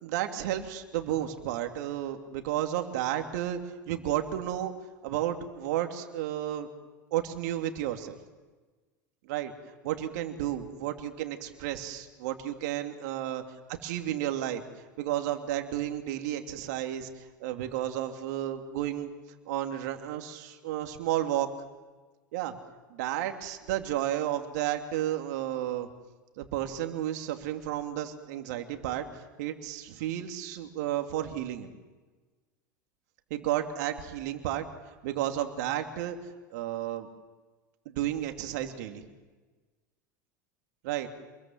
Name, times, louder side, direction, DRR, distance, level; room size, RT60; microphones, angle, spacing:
voice 1, 0.0-3.6 3.9-4.7 5.0-6.7 7.1-8.1 9.3-9.5 9.8-13.4 13.8-14.6 15.0-17.1 17.4-19.1 19.5-21.5 22.3-22.5 22.9-25.9 26.4-29.0 29.4-31.7 33.3-34.6 35.0-36.2 36.5-37.1 37.8-39.1 40.8-41.1, right 12 dB, 65° right, 5 dB, 2.9 m, -32 dB
27.5 x 22.0 x 7.7 m, 1.3 s
hypercardioid pair, 85°, 10 cm